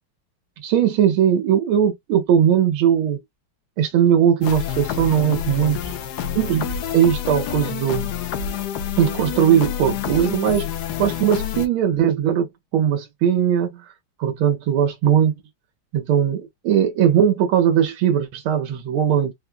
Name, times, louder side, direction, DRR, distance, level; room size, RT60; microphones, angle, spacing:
voice 1, 0.6-3.2 3.8-5.9 6.4-8.1 9.0-10.7 11.0-13.9 14.2-15.3 15.9-19.3, right 9 dB, 90° right, 1.6 m, -19 dB
sound 1, 4.4-11.7, left 8 dB, 70° left, 1.1 m, -28 dB
4.3 x 2.3 x 2.5 m
omnidirectional pair, 2.2 m